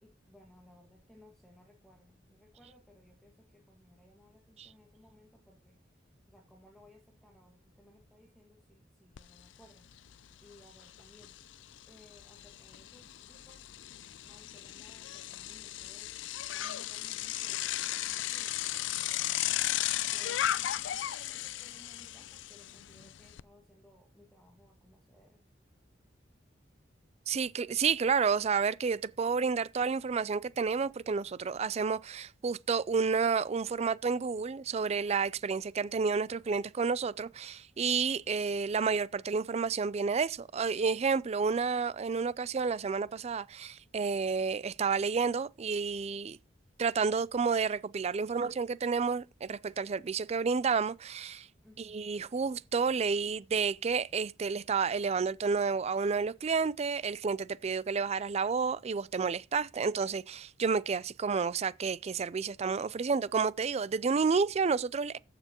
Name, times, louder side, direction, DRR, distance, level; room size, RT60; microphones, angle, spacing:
voice 1, 0.0-9.9 10.4-11.4 11.9-13.7 14.2-25.4 51.6-52.0, left 1 dB, 5° left, 1.6 m, -61 dB
Bicycle, 9.2-9.3 9.6-23.4, left 13 dB, 70° left, 0.4 m, -36 dB
voice 2, 27.3-46.4 46.8-51.5 51.8-65.2, right 5 dB, 35° right, 0.4 m, -30 dB
14.5 x 6.8 x 2.9 m
head